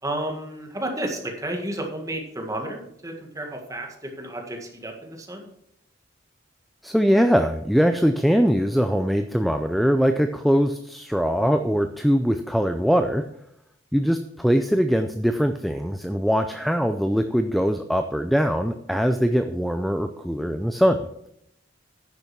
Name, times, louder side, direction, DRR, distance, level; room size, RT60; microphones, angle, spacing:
voice 1, 0.0-5.5, right 1 dB, 20° right, 2 dB, 1.8 m, -32 dB
voice 2, 6.8-13.2 13.9-21.1, equal, ahead, 8 dB, 0.4 m, -22 dB
10.5 x 6.8 x 5.9 m, 0.76 s
head